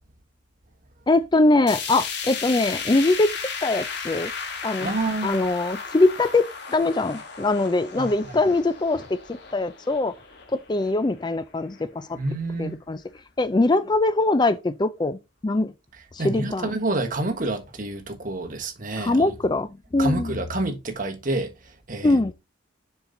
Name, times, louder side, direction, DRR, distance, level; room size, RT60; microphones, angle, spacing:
voice 1, 1.1-3.3 3.6-4.3 4.6-4.9 5.2-10.1 10.5-12.1 12.6-13.0 13.4-15.2 15.4-15.7 16.1-16.7 19.0-20.3 22.0-22.3, left 2 dB, 20° left, 0.4 m, -22 dB
sound 1, 1.7-11.8 12.2-12.3 12.7-12.8 13.7-13.8, left 5 dB, 55° left, 1.8 m, -35 dB
voice 2, 4.8-5.4 8.0-8.4 12.1-12.8 16.2-19.3 20.0-22.3, right 2 dB, 45° right, 1.4 m, -28 dB
7.2 x 5.6 x 3.8 m
head